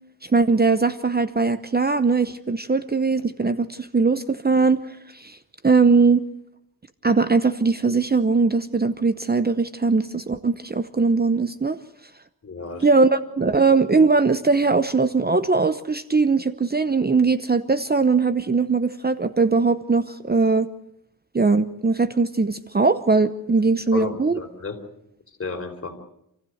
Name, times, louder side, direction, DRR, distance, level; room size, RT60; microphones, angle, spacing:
voice 1, 0.2-4.8 5.1-5.4 5.6-6.2 7.0-11.8 12.8-20.7 21.3-24.4, right 4 dB, 25° right, 12 dB, 0.8 m, -20 dB
voice 2, 12.4-12.9 13.4-13.6 23.9-24.8 25.4-25.9, left 4 dB, 40° left, 3 dB, 4.2 m, -32 dB
27.5 x 15.5 x 7.9 m, 0.79 s
wide cardioid pair, 110°, 35 cm